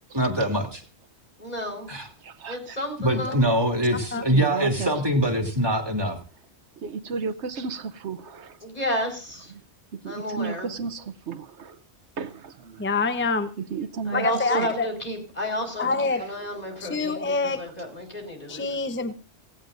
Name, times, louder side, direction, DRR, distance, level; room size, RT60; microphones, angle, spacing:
voice 1, 0.1-0.8 1.9-2.0 3.0-6.2, equal, 20° right, 3.0 m, -23 dB
voice 2, 1.4-1.9 2.5-3.4 8.6-9.5 10.0-10.7 14.0-15.9 16.2-18.8, equal, 35° left, 4.9 m, -32 dB
voice 3, 2.4-2.8 4.3-4.9 6.8-8.6 9.5-9.6 9.9-11.8 12.2-12.9 13.7-14.7 16.6-17.0 18.5-18.8, right 5 dB, 80° right, 1.1 m, -34 dB
voice 4, 12.8-13.5 14.1-14.9 15.8-16.2 16.8-17.6 18.5-19.1, left 3 dB, 10° left, 0.8 m, -25 dB
17.5 x 17.0 x 2.6 m
omnidirectional pair, 1.1 m